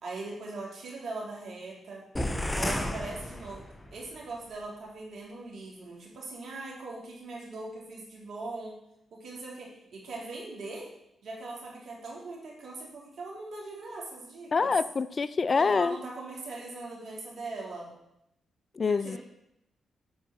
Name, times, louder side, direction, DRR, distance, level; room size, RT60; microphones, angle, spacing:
voice 1, 0.0-2.0 2.5-3.6 3.9-8.8 9.1-10.9 11.2-14.7 15.5-17.9 18.8-19.2, right 3 dB, 70° right, 3.2 m, -40 dB
sound 1, 2.2-4.0, left 1 dB, 15° left, 1.3 m, -32 dB
voice 2, 14.5-16.0 18.8-19.2, left 4 dB, 45° left, 0.4 m, -26 dB
9.8 x 4.7 x 7.2 m
supercardioid pair, 50°, 0 cm